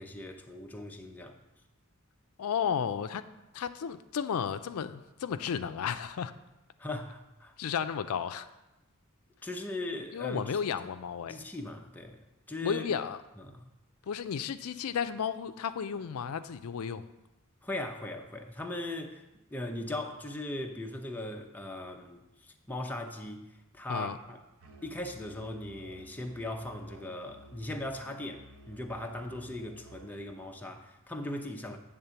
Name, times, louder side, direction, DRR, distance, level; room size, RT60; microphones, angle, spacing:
voice 1, 0.0-1.4 6.8-7.5 9.4-10.6 11.3-12.9 13.4-13.7 17.6-19.2 19.5-23.4 23.7-24.4 24.8-31.8, left 1 dB, 10° left, 2 dB, 0.6 m, -39 dB
voice 2, 2.4-3.2 3.5-6.3 7.6-8.5 10.1-11.4 12.6-13.2 14.1-17.0 23.9-24.2, left 7 dB, 80° left, 11 dB, 0.4 m, -33 dB
Musical instrument, 24.6-30.2, right 2 dB, 80° right, 0.9 m, -54 dB
8.8 x 3.6 x 6.9 m, 0.97 s
head